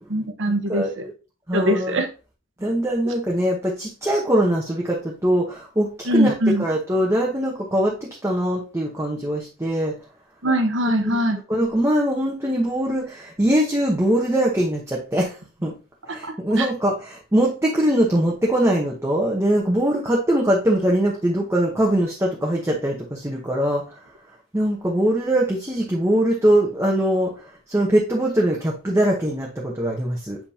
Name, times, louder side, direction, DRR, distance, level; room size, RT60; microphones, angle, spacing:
voice 1, 0.1-1.1 1.5-2.1 3.1-3.2 6.1-6.6 10.4-11.4 16.2-16.7, equal, 60° right, 7 dB, 1.1 m, -22 dB
voice 2, 0.7-1.1 1.5-2.0 2.6-6.3 6.6-10.0 11.0-15.4 15.6-15.7 16.1-24.0 24.5-27.3 27.7-30.4, right 1 dB, 15° right, -2 dB, 1.0 m, -22 dB
7.2 x 5.2 x 2.8 m, 0.33 s
head